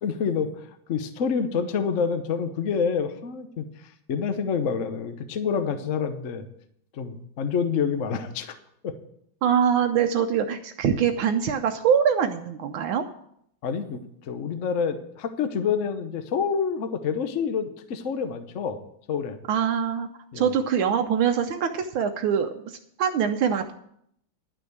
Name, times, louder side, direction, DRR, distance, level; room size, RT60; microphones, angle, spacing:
voice 1, 0.0-3.6 4.1-6.5 6.9-8.6 8.8-8.9 13.6-18.8 19.1-19.4 20.3-20.5, left 6 dB, 50° left, 8 dB, 1.0 m, -27 dB
voice 2, 9.4-13.0 19.5-20.1 20.3-23.8, right 7 dB, 80° right, 6 dB, 1.5 m, -24 dB
11.5 x 6.2 x 8.0 m, 0.71 s
omnidirectional pair, 2.2 m